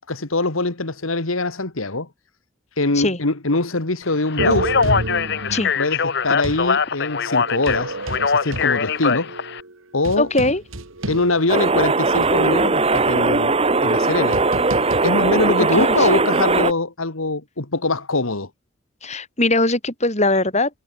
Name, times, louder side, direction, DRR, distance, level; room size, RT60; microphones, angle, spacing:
voice 1, 0.1-2.1 2.8-4.7 5.8-7.9 8.2-9.3 9.9-10.3 11.1-13.6 13.8-14.4 15.0-18.5, left 2 dB, 85° left, 2.1 m, -23 dB
Speech, 4.3-9.6, left 5 dB, 55° left, 1.1 m, -22 dB
sound 1, 4.4-6.7 7.4-11.8 12.2-12.3 13.0-16.5, right 2 dB, 80° right, 2.7 m, -31 dB
voice 2, 10.2-10.6 15.6-16.1 19.0-20.7, left 2 dB, 35° left, 6.3 m, -20 dB
sound 2, 11.5-16.7, right 3 dB, 30° right, 1.3 m, -19 dB
head